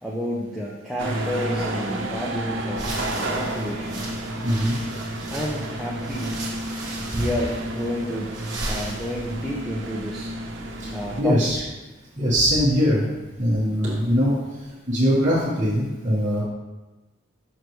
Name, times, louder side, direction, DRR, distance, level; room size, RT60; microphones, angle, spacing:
voice 1, 0.0-4.1 5.3-6.3 7.1-8.4 8.7-10.3 10.9-11.6, equal, ahead, -5 dB, 0.6 m, -30 dB
sound 1, 1.0-11.2, right 1 dB, 70° right, 0.9 m, -31 dB
sound 2, 2.7-9.6, right 2 dB, 20° right, 1.5 m, -36 dB
voice 2, 4.4-4.8 7.1-7.2 10.8-10.9 11.2-11.6 12.2-13.0 13.4-16.4, equal, 35° right, -10 dB, 1.5 m, -21 dB
6.6 x 6.4 x 3.1 m, 1.1 s
head